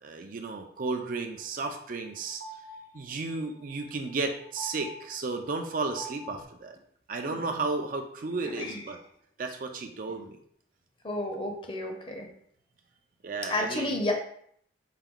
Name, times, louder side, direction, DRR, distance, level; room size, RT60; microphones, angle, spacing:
voice 1, 0.0-2.4 2.9-6.8 7.1-9.0 9.4-10.4 13.2-13.9, right 3 dB, 50° right, 5 dB, 0.4 m, -33 dB
sound 1, 1.1-6.4, right 2 dB, 85° right, 0.7 m, -46 dB
voice 2, 8.4-8.8 11.0-12.3 13.5-14.1, left 1 dB, 30° left, 2 dB, 0.7 m, -31 dB
4.6 x 2.3 x 3.7 m, 0.64 s
head